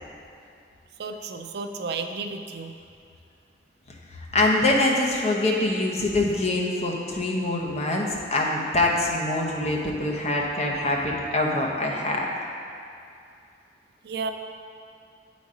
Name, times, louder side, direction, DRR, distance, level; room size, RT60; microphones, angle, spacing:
voice 1, 1.0-2.7 14.0-14.3, right 4 dB, 60° right, 6 dB, 0.4 m, -32 dB
voice 2, 4.1-12.3, left 2 dB, 35° left, -1 dB, 0.9 m, -24 dB
8.0 x 4.2 x 4.9 m, 2.5 s
head